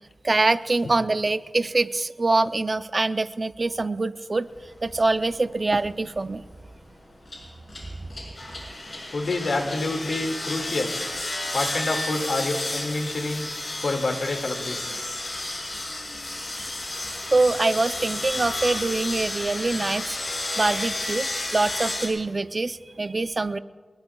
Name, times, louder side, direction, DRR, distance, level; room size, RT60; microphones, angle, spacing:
voice 1, 0.2-4.5 4.8-6.4 17.3-20.2 20.6-23.6, right 3 dB, 40° right, 12 dB, 0.5 m, -24 dB
sound 1, 5.0-5.1 5.6-6.0 7.2-22.1, left 2 dB, 45° left, 5.9 m, -32 dB
voice 2, 9.1-10.9 11.5-13.5 13.8-15.0, left 2 dB, 80° left, 4 dB, 2.0 m, -27 dB
25.0 x 21.0 x 2.3 m, 1.4 s
wide cardioid pair, 95°, 0 cm